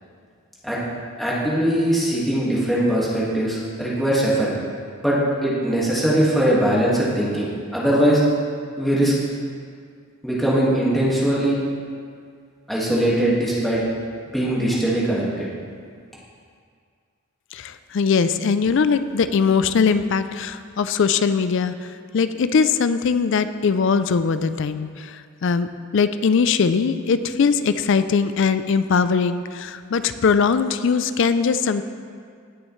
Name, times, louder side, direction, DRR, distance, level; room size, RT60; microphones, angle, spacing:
voice 1, 1.2-4.5 5.0-8.2 8.8-9.1 10.2-11.6 12.7-13.8 14.3-15.5, right 1 dB, ahead, -7 dB, 1.8 m, -21 dB
voice 2, 17.5-25.7 25.9-31.8, left 5 dB, 60° left, 11 dB, 0.4 m, -21 dB
17.5 x 6.4 x 3.2 m, 2.1 s
head